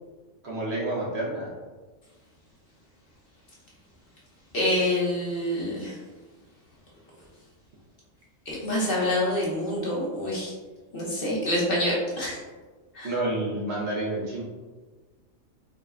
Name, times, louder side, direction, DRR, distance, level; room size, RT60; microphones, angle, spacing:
voice 1, 0.4-1.5 13.0-14.4, right 1 dB, 60° right, -4 dB, 0.8 m, -29 dB
voice 2, 4.5-5.9 8.5-10.5 10.9-12.4 12.9-13.1, left 1 dB, 45° left, -5 dB, 0.9 m, -26 dB
3.8 x 2.2 x 3.5 m, 1.3 s
omnidirectional pair, 1.5 m